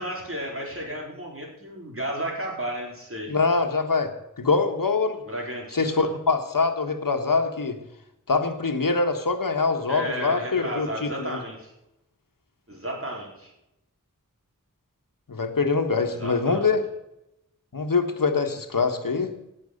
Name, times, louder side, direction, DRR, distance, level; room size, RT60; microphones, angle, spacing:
voice 1, 0.0-3.3 5.2-6.1 9.9-11.7 12.7-13.5 16.0-16.7, right 1 dB, 40° right, -1 dB, 4.3 m, -33 dB
voice 2, 3.3-4.1 4.4-5.2 5.7-7.8 8.3-11.4 15.3-16.8 17.7-19.3, left 4 dB, 80° left, 6 dB, 1.4 m, -24 dB
17.5 x 6.5 x 6.6 m, 0.87 s
wide cardioid pair, 50°, 33 cm